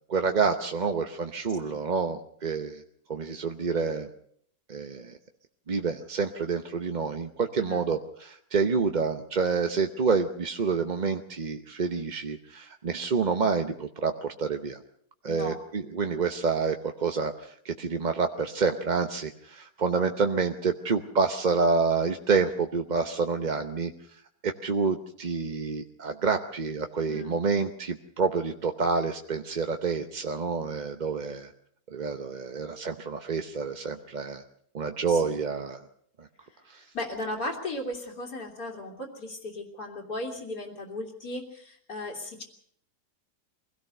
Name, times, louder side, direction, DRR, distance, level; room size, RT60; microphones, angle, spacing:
voice 1, 0.1-2.8 3.1-4.1 4.7-5.2 5.7-14.8 15.2-31.5 31.9-34.4 34.7-35.8 36.2-36.3 36.7-36.8, right 4 dB, 35° right, 6 dB, 0.8 m, -28 dB
voice 2, 15.2-15.6 27.1-27.4 35.1-35.3 36.9-42.4, left 1 dB, 70° left, 2 dB, 3.1 m, -36 dB
24.0 x 17.0 x 6.6 m, 0.66 s
omnidirectional pair, 1.7 m